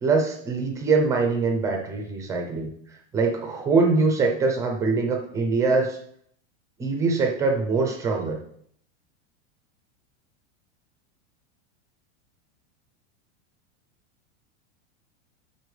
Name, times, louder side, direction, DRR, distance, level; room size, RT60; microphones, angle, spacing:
voice 1, 0.0-2.7 3.1-6.0 6.8-8.4, right 4 dB, 10° right, 2 dB, 0.5 m, -23 dB
12.0 x 4.2 x 3.2 m, 0.66 s
supercardioid pair, 175°, 35 cm